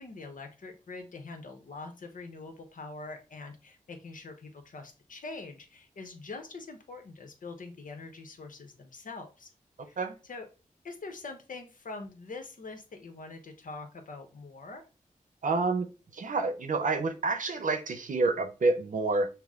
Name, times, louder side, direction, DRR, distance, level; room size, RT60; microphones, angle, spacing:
voice 1, 0.0-9.5 9.9-10.0 10.2-10.5 10.8-14.8, left 3 dB, 75° left, 6 dB, 0.9 m, -44 dB
voice 2, 15.4-15.9 16.1-19.3, right 3 dB, 70° right, 7 dB, 0.8 m, -28 dB
5.8 x 2.1 x 3.6 m, 0.32 s
cardioid pair, 60°, 14 cm